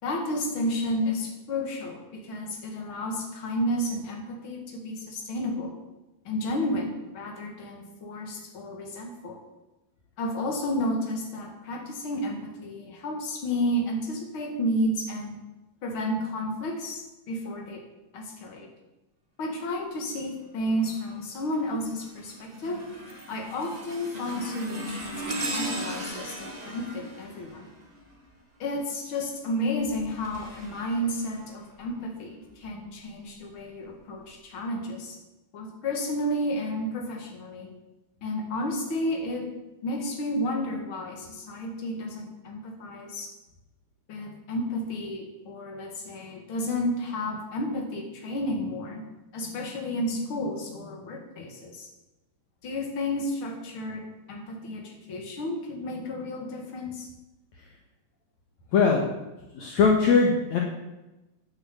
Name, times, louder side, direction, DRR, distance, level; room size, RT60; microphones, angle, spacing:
voice 1, 0.0-5.7 6.3-9.4 10.2-15.4 15.8-17.8 18.1-18.7 19.4-22.9 23.3-27.7 28.6-35.2 35.5-37.7 38.2-39.5 39.8-43.3 44.1-51.9 52.6-57.1, left 1 dB, 40° left, 2 dB, 2.5 m, -31 dB
sound 1, 20.7-21.1 21.6-28.4 29.7-31.9 32.5-32.7 33.6-33.7, right 1 dB, 25° right, 0.9 m, -38 dB
voice 2, 58.7-59.0 59.5-60.6, left 5 dB, 65° left, 1 dB, 2.3 m, -20 dB
9.7 x 8.5 x 8.3 m, 1.0 s
omnidirectional pair, 4.0 m